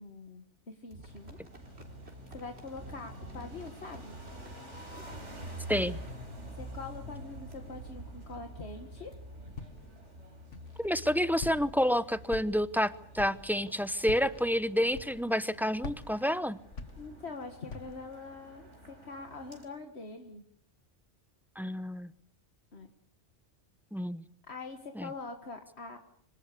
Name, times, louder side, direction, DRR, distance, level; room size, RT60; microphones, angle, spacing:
voice 1, 0.0-1.4 2.3-4.2 6.6-9.1 17.0-20.4 22.7-22.9 24.5-26.0, left 3 dB, 60° left, 5 dB, 1.9 m, -44 dB
sound 1, 0.9-7.1 7.5-7.6 8.1-8.3 8.7-8.8 9.1-9.2 9.7-9.9 10.3-10.4 10.7-10.8 11.1-11.9 12.5-12.6, right 2 dB, 60° right, 4.0 m, -51 dB
sound 2, 1.1-19.6, right 1 dB, 80° right, 5.1 m, -47 dB
Walk footsteps, 9.6-10.0 10.5-11.0 11.4-11.9 12.3-12.8 13.1-13.5 14.0-14.4 14.9-15.4 15.8-17.3 17.7-18.1, left 4 dB, 85° left, 2.0 m, -43 dB
voice 2, 10.8-16.6 21.6-22.1 23.9-24.2 25.0-25.1, equal, ahead, 14 dB, 0.7 m, -29 dB
25.5 x 18.5 x 8.4 m, 0.65 s
omnidirectional pair, 1.2 m